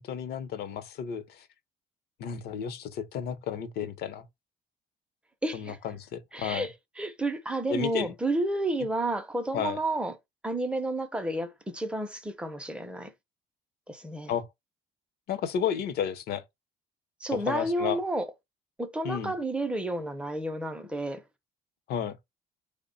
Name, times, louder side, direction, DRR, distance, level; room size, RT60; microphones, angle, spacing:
voice 1, 0.0-1.5 2.2-4.2 5.5-6.7 7.7-8.1 9.5-9.8 14.3-14.5 15.3-16.4 17.3-18.0 19.0-19.3 21.9-22.2, left 8 dB, 70° left, 0.7 m, -32 dB
voice 2, 5.4-5.8 6.3-10.2 10.4-13.1 13.9-14.3 17.2-18.3 18.8-21.2, right 2 dB, 5° right, 0.6 m, -31 dB
3.3 x 2.1 x 3.8 m
cardioid pair, 110°, 17 cm